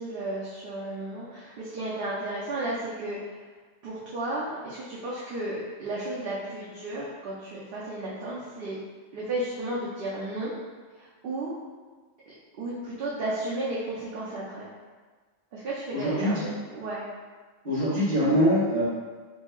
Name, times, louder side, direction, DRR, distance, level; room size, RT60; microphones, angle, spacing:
voice 1, 0.0-3.4 3.8-8.8 9.1-10.5 11.0-11.5 12.6-14.7 15.5-17.1, right 1 dB, 60° right, -7 dB, 0.8 m, -33 dB
voice 2, 15.9-16.4 17.6-18.8, equal, 40° right, -11 dB, 1.5 m, -23 dB
4.2 x 2.7 x 2.2 m, 1.4 s
omnidirectional pair, 1.1 m